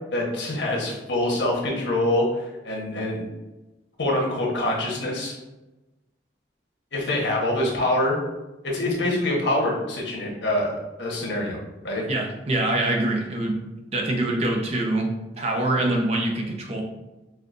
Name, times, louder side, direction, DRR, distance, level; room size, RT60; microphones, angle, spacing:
voice 1, 0.1-3.2 4.0-5.4 6.9-8.2 8.6-12.1, left 1 dB, 90° left, -2 dB, 1.2 m, -25 dB
voice 2, 12.1-13.6 13.9-16.8, right 1 dB, 35° right, 0 dB, 0.7 m, -24 dB
5.8 x 2.5 x 2.5 m, 1.1 s
head